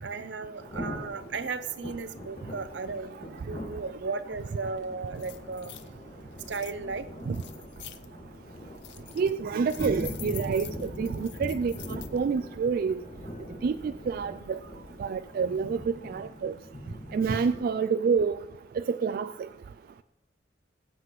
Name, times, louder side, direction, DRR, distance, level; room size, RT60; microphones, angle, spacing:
voice 1, 0.0-3.2 3.5-5.7 6.5-7.1, right 4 dB, 75° right, 12 dB, 0.7 m, -35 dB
Thunder / Rain, 0.6-17.6, equal, 45° left, 2.3 m, -42 dB
sound 1, 4.8-4.9 5.2-5.9 6.4-6.7 7.3-8.1 8.6-9.3 9.7-12.2, left 13 dB, 75° left, 0.6 m, -46 dB
voice 2, 9.2-13.0 13.6-14.6 15.0-16.5 17.1-18.4 18.8-19.3, right 5 dB, 55° right, 11 dB, 0.3 m, -28 dB
22.0 x 7.8 x 3.1 m, 1.1 s
head